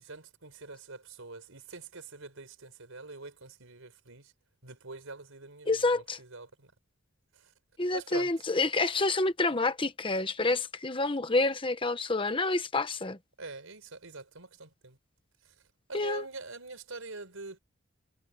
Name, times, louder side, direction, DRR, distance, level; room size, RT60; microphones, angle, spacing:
voice 1, 0.0-4.3 4.6-6.7 7.3-7.5 7.9-8.3 13.4-15.0 15.4-15.5 15.9-17.6, right 3 dB, 85° right, 4.5 m, -44 dB
voice 2, 5.7-6.2 7.8-13.2 15.9-16.2, left 2 dB, 25° left, 1.1 m, -28 dB
head